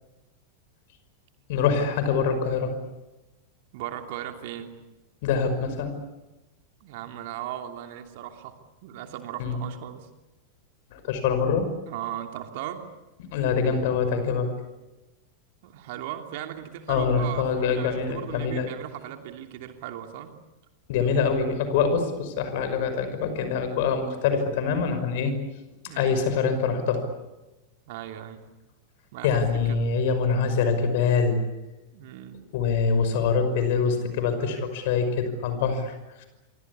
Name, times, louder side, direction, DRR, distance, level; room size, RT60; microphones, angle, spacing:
voice 1, 1.5-2.7 5.2-5.9 9.4-9.6 10.9-11.7 13.2-14.5 16.9-18.7 20.9-25.3 25.9-27.0 29.2-31.4 32.5-35.9, left 5 dB, 50° left, 9 dB, 5.7 m, -24 dB
voice 2, 3.7-4.7 6.8-8.6 8.8-10.1 11.9-12.8 15.6-20.3 25.9-26.2 27.9-28.4 29.1-29.8 31.9-32.4, right 12 dB, 50° right, 5 dB, 3.0 m, -37 dB
27.5 x 24.5 x 8.6 m, 1.1 s
figure-of-eight pair, 90°, 0 cm